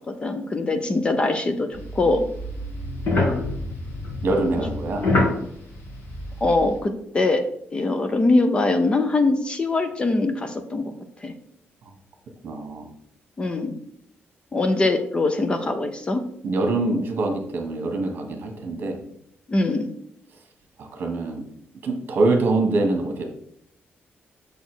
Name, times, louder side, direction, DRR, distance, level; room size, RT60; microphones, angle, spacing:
voice 1, 0.1-1.7 1.9-2.2 6.4-7.4 7.7-10.9 11.2-11.3 13.4-13.8 14.5-16.2 19.5-19.9, left 2 dB, 25° left, 8 dB, 0.6 m, -22 dB
sound 1, 1.7-6.8, left 2 dB, 60° left, 2.2 m, -26 dB
voice 2, 4.2-5.1 12.4-12.9 16.4-19.0 20.8-21.4 21.8-23.2, right 2 dB, 50° right, 4 dB, 1.5 m, -24 dB
6.7 x 4.2 x 6.2 m, 0.70 s
wide cardioid pair, 160°, 4 cm